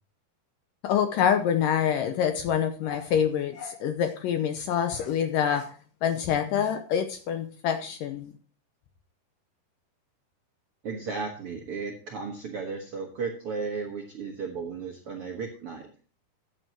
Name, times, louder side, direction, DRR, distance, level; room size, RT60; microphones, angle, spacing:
voice 1, 0.8-5.7 6.0-8.3, left 8 dB, 75° left, 7 dB, 2.1 m, -26 dB
voice 2, 10.8-15.9, right 5 dB, 70° right, 2 dB, 1.3 m, -34 dB
14.5 x 9.1 x 2.9 m, 0.38 s
omnidirectional pair, 4.6 m